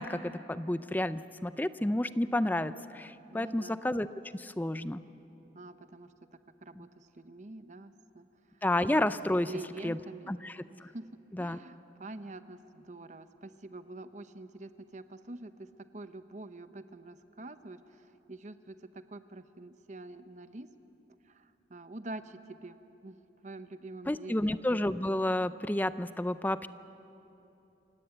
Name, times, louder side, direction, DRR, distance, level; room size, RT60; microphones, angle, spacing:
voice 1, 0.0-4.1 4.3-5.0 6.8-6.9 8.6-9.5 9.8-10.0 10.3-10.9 11.3-11.6 24.1-26.7, left 1 dB, 10° left, 14 dB, 0.4 m, -31 dB
voice 2, 3.3-3.8 5.5-8.3 9.5-10.3 10.9-11.1 11.4-15.7 15.9-20.7 21.3-22.8 23.0-23.2 23.4-24.5, right 2 dB, 40° right, 11 dB, 0.8 m, -46 dB
27.5 x 17.5 x 8.0 m, 3.0 s
head